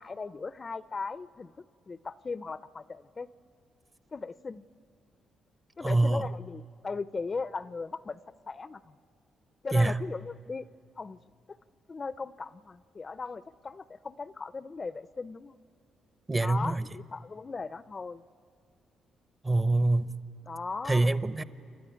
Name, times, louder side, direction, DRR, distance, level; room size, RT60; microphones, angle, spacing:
voice 1, 0.0-3.3 4.1-4.7 5.8-8.2 8.5-9.0 9.6-10.7 11.0-11.2 11.5-11.6 11.9-15.6 16.4-18.2 20.5-21.2, left 4 dB, 40° left, 15 dB, 0.5 m, -38 dB
voice 2, 5.8-6.3 9.7-10.0 16.3-16.8 19.4-20.2 20.8-21.4, right 2 dB, 25° right, 13 dB, 0.8 m, -25 dB
29.5 x 12.5 x 10.0 m, 2.3 s
supercardioid pair, 60°, 0 cm